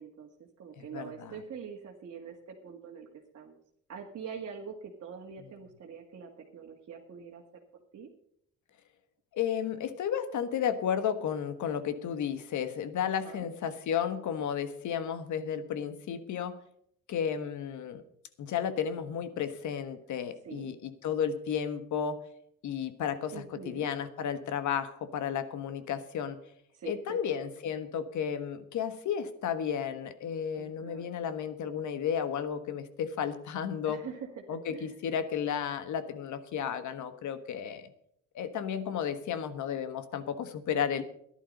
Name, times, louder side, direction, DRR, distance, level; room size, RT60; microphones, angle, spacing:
voice 1, 0.0-3.1 3.3-3.6 3.9-7.6 7.9-8.1 13.0-13.5 20.4-20.7 23.3-23.9 26.7-27.2 30.5-31.1 33.8-35.0, right 6 dB, 60° right, 0 dB, 1.9 m, -44 dB
voice 2, 0.9-1.3 9.3-16.6 17.1-18.0 18.4-22.2 22.6-23.3 23.6-26.4 26.9-34.0 34.5-37.9 38.3-41.0, left 8 dB, 75° left, 12 dB, 1.4 m, -33 dB
13.0 x 11.0 x 5.3 m, 0.71 s
cardioid pair, 90°, 30 cm